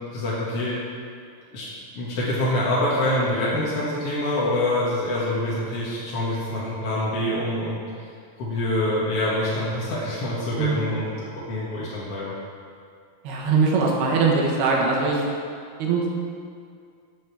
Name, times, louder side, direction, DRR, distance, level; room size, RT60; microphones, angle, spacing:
voice 1, 0.1-0.8 1.5-1.7 2.0-8.1 8.4-12.3, left 1 dB, 50° left, -7 dB, 2.0 m, -25 dB
voice 2, 10.6-10.9 13.2-15.2 15.8-16.2, right 4 dB, 75° right, -1 dB, 3.4 m, -22 dB
9.0 x 8.2 x 7.4 m, 2.3 s
omnidirectional pair, 4.8 m